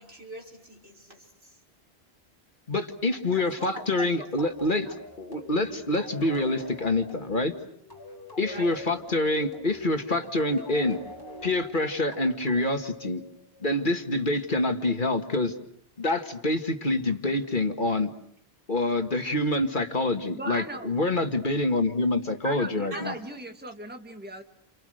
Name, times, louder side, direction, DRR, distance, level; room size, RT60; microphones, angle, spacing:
voice 1, 0.0-1.6 3.3-4.5 4.8-4.9 8.5-9.0 22.9-23.1, right 1 dB, 80° right, -1 dB, 5.8 m, -43 dB
voice 2, 2.7-4.9 5.2-7.5 8.4-11.0 11.4-13.2 13.6-15.5 16.0-18.1 18.7-23.1, left 2 dB, 50° left, 6 dB, 2.0 m, -26 dB
sound 1, 4.4-13.6, left 1 dB, 20° left, 4.7 m, -44 dB
voice 3, 20.3-20.9 22.4-24.4, right 1 dB, 10° right, 5 dB, 1.9 m, -37 dB
30.0 x 28.5 x 6.5 m, 0.67 s
omnidirectional pair, 1.1 m